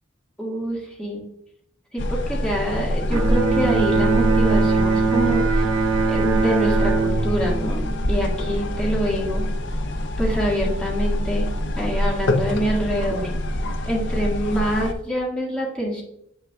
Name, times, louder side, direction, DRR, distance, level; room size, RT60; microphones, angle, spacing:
voice 1, 0.4-1.2 1.9-5.7 6.1-7.8 8.1-9.4 10.2-11.5 11.8-13.3 13.9-16.0, equal, 5° left, -4 dB, 1.8 m, -25 dB
sound 1, 2.0-14.9, left 1 dB, 60° left, 0.7 m, -25 dB
Bowed string instrument, 3.1-8.6, right 4 dB, 85° right, 1.0 m, -22 dB
7.4 x 6.5 x 2.3 m, 0.78 s
head